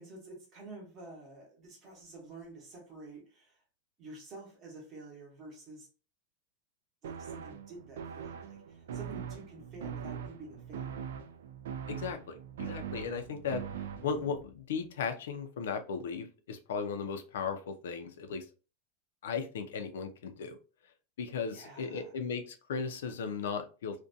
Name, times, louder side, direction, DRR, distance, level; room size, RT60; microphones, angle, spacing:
voice 1, 0.0-3.6 4.0-5.9 7.0-11.1 21.5-22.2, right 3 dB, 25° right, 0.8 m, -49 dB
sound 1, 7.0-14.4, right 8 dB, 90° right, 0.4 m, -42 dB
voice 2, 11.9-13.6 14.0-18.4 19.2-20.6 21.2-24.0, left 6 dB, 85° left, 0.5 m, -36 dB
2.5 x 2.2 x 2.6 m
supercardioid pair, 175°, 0 cm